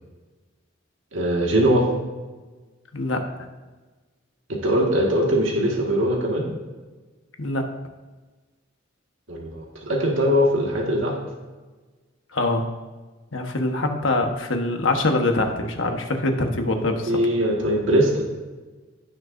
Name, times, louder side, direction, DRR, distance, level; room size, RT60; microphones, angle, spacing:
voice 1, 1.1-1.8 4.5-6.5 9.3-11.1 16.7-18.3, equal, 75° right, -1 dB, 1.8 m, -21 dB
voice 2, 2.9-3.3 7.4-7.6 12.3-12.7 13.3-17.2, left 2 dB, 70° left, 4 dB, 1.2 m, -24 dB
16.0 x 6.5 x 2.6 m, 1.3 s
head